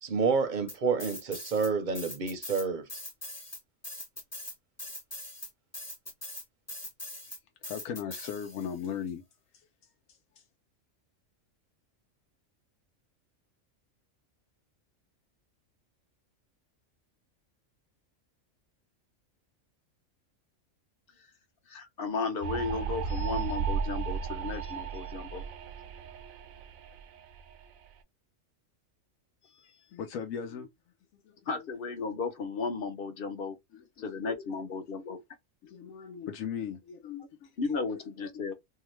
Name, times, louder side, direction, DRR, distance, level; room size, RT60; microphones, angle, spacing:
voice 1, 0.0-2.8, right 5 dB, 50° right, 0.6 m, -29 dB
sound 1, 0.7-1.7 2.0-8.8, left 1 dB, 15° left, 0.7 m, -42 dB
voice 2, 7.6-9.2 29.9-30.7 31.3-31.4 33.7-34.3 35.6-37.5 38.3-38.5, left 8 dB, 85° left, 1.0 m, -38 dB
voice 3, 21.7-25.4 31.5-33.6 34.0-35.2 37.6-38.5, left 4 dB, 50° left, 0.8 m, -34 dB
sound 2, 22.4-27.9, right 6 dB, 85° right, 1.0 m, -35 dB
2.8 x 2.3 x 3.0 m
omnidirectional pair, 1.4 m